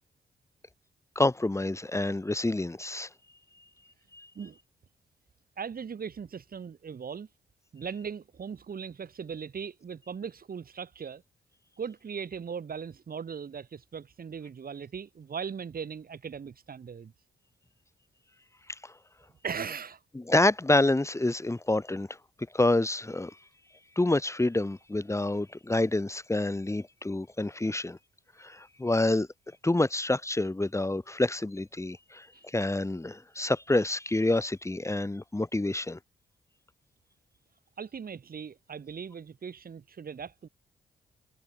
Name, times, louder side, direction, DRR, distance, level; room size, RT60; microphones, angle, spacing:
voice 1, 1.2-3.1 4.1-4.3 20.1-22.1 22.5-23.3 24.0-28.0 28.4-29.3 29.6-32.3 32.5-36.0, left 2 dB, 15° left, 2.0 m, -27 dB
voice 2, 5.6-7.3 7.7-11.2 11.8-17.1 19.4-20.0 32.3-32.4 37.8-40.5, right 6 dB, 55° right, 5.0 m, -39 dB
hypercardioid pair, 40°, 18 cm